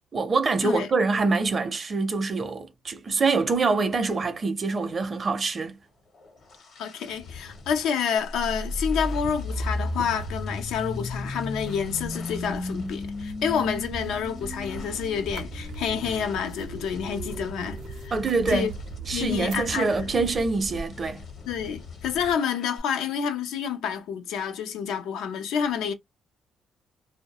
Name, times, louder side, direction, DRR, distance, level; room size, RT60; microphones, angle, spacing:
voice 1, 0.1-5.7 18.1-18.7 19.1-21.2, right 4 dB, 40° right, 0.5 m, -25 dB
sound 1, 5.8-22.8, left 4 dB, 65° left, 0.9 m, -44 dB
voice 2, 6.8-18.2 18.5-18.7 19.1-20.1 21.5-25.9, left 7 dB, 85° left, 0.4 m, -29 dB
sound 2, 8.3-18.2, left 2 dB, 30° left, 0.4 m, -35 dB
sound 3, 9.1-20.9, right 5 dB, 90° right, 0.5 m, -41 dB
2.2 x 2.0 x 2.8 m
cardioid pair, 90°, 0 cm